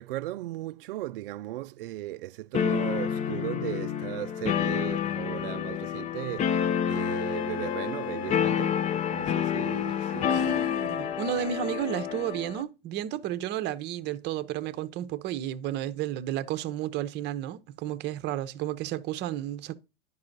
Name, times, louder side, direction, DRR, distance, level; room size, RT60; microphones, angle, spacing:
voice 1, 0.0-8.8 9.1-10.6, right 15 dB, 65° right, 0.4 m, -37 dB
sound 1, 2.5-12.6, left 8 dB, 25° left, 0.5 m, -29 dB
Wind instrument woodwind instrument, 6.9-10.8, left 11 dB, 85° left, 0.5 m, -42 dB
voice 2, 10.0-19.7, right 11 dB, 35° right, 0.8 m, -32 dB
10.5 x 5.5 x 3.9 m
hypercardioid pair, 100°, 30 cm